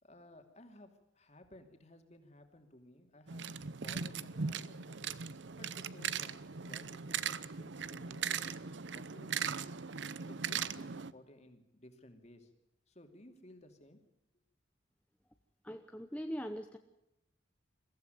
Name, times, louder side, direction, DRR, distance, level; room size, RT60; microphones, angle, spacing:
voice 1, 0.0-3.5 3.8-5.1 5.6-9.7 10.0-12.5 12.9-14.0, left 1 dB, 35° left, 6 dB, 2.8 m, -58 dB
sound 1, 3.3-11.1, right 6 dB, 65° right, 0.8 m, -39 dB
voice 2, 15.6-16.8, equal, 5° left, 6 dB, 0.8 m, -41 dB
22.5 x 15.0 x 9.4 m, 0.87 s
head